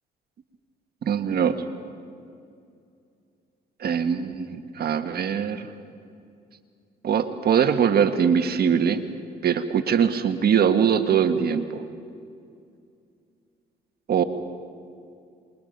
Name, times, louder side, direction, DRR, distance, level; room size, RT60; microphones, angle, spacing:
voice 1, 1.0-1.6 3.8-5.7 7.0-9.0 9.4-11.8 14.1-14.2, right 7 dB, 60° right, 8 dB, 1.4 m, -22 dB
27.5 x 21.5 x 5.3 m, 2.4 s
supercardioid pair, 65°, 19 cm